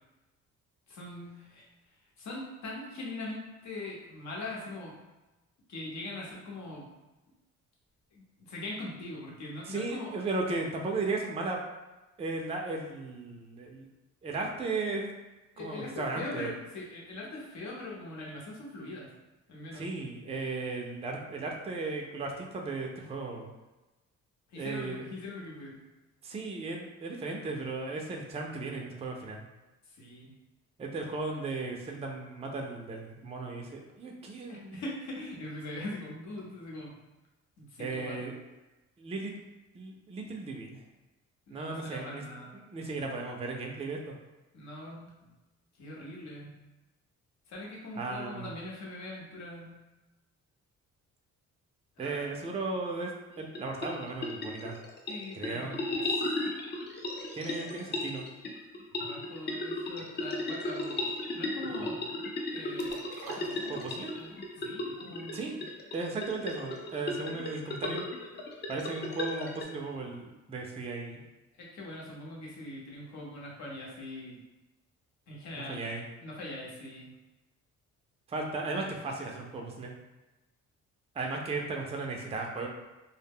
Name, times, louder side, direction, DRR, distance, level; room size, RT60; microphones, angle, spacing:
voice 1, 0.9-1.6 2.2-5.0 5.7-6.8 8.1-10.1 15.5-19.1 19.5-19.9 24.5-25.8 29.9-30.3 34.5-36.9 37.6-38.3 41.5-42.5 44.5-45.1 45.8-46.6 47.5-49.8 52.0-52.3 55.1-56.1 59.0-62.0 62.5-62.9 63.2-63.8 64.2-64.3 64.6-65.5 71.6-74.4 75.3-75.8 76.2-77.1, left 2 dB, 65° left, -3 dB, 0.9 m, -42 dB
voice 2, 9.7-11.6 12.2-13.9 14.2-15.1 15.6-16.5 19.7-23.5 24.6-25.0 26.2-29.5 30.8-34.8 37.8-38.3 39.0-39.3 39.7-40.8 41.5-42.2 42.5-44.1 48.0-48.5 52.0-53.1 53.4-54.8 55.3-55.9 57.3-58.3 63.6-64.1 65.3-65.6 65.9-68.0 68.7-71.2 75.5-76.0 78.3-79.9 81.1-82.7, right 3 dB, 20° right, 1 dB, 0.4 m, -36 dB
sound 1, 53.3-69.6, left 2 dB, 35° left, 0.5 m, -36 dB
sound 2, 62.8-64.3 64.7-64.8, right 4 dB, 80° right, 0.5 m, -45 dB
2.1 x 2.0 x 3.5 m, 1.1 s
cardioid pair, 90°, 30 cm